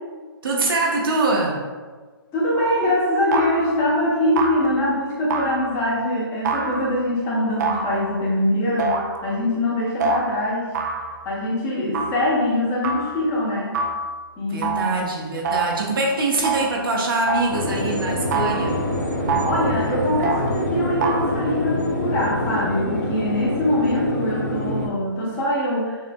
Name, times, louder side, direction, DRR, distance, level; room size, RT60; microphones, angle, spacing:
voice 1, 0.4-1.6 14.5-18.8, right 2 dB, 65° right, -2 dB, 0.9 m, -23 dB
voice 2, 2.3-10.7 11.2-13.7 14.4-14.9 19.4-26.0, left 1 dB, 20° left, -5 dB, 1.0 m, -23 dB
sound 1, 2.5-2.8 3.3-3.9 4.4-4.8 5.3-5.9 6.4-7.1 7.6-8.3 8.8-9.3 10.0-10.2 10.7-11.3 11.9-12.2 12.8-13.2 13.7-14.1 14.6-15.0 15.4-15.9 16.4-16.8 17.3-17.7 18.3-18.8 19.3-19.7 20.2-20.5 21.0-21.3, right 5 dB, 45° right, 0.5 m, -26 dB
sound 2, 17.5-24.9, left 1 dB, 45° left, 1.0 m, -25 dB
6.6 x 2.4 x 2.2 m, 1.4 s
hypercardioid pair, 135°, 13 cm